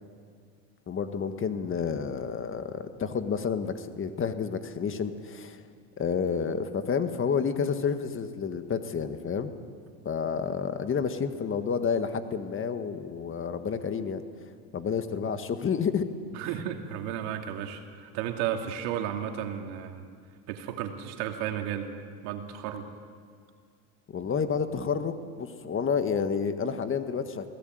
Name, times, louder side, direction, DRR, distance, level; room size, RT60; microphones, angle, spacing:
voice 1, 0.9-5.6 6.0-9.5 10.0-14.5 14.7-16.1 24.1-27.5, left 6 dB, 30° left, 9 dB, 1.7 m, -30 dB
voice 2, 16.3-20.1 20.5-21.9 22.2-22.9, right 10 dB, 65° right, 4 dB, 2.6 m, -33 dB
22.5 x 17.5 x 9.4 m, 2.1 s
hypercardioid pair, 95°, 40 cm